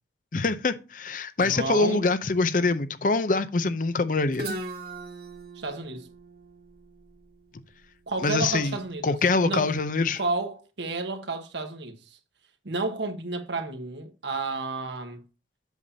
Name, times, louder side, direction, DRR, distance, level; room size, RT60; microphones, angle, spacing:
voice 1, 0.3-4.5 8.2-8.8 9.0-10.2, left 3 dB, 50° left, 0.6 m, -24 dB
voice 2, 1.4-2.1 5.5-6.1 8.1-9.2 9.4-9.7 10.1-12.2 12.6-15.2, right 3 dB, 85° right, 1.3 m, -31 dB
Guitar, 4.3-8.1, right 1 dB, 55° right, 1.6 m, -39 dB
8.1 x 7.0 x 2.8 m
head